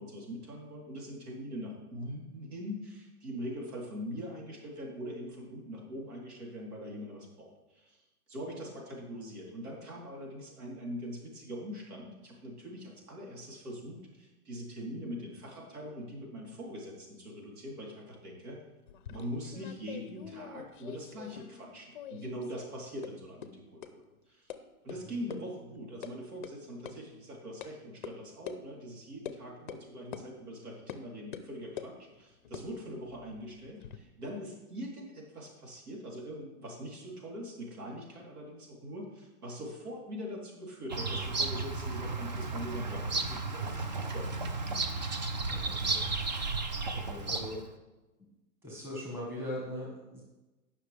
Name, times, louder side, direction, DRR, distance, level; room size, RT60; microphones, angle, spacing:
voice 1, 0.0-8.0 8.3-18.6 19.1-24.5 24.8-44.4, equal, 80° right, -2 dB, 3.6 m, -42 dB
sound 1, 18.9-21.7 21.9-22.7 23.0-23.1 23.4-23.5 23.8-23.9 24.5-24.6 24.9-25.0 25.3-25.4 25.7-26.1 26.4-26.5 26.9-27.0 27.6-27.7 28.0-28.1 28.5-28.6 29.3-29.4 29.7-29.8 30.1-30.3 30.9-31.0 31.3-31.9 32.4-34.0, left 8 dB, 35° left, 0.5 m, -44 dB
Bird vocalization bird call bird song, 40.9-47.7, right 3 dB, 30° right, 0.4 m, -33 dB
voice 2, 45.5-46.0 46.9-47.6 48.6-50.2, left 1 dB, 5° right, -5 dB, 1.5 m, -40 dB
17.0 x 5.8 x 3.4 m, 1.1 s
hypercardioid pair, 160°, 45 cm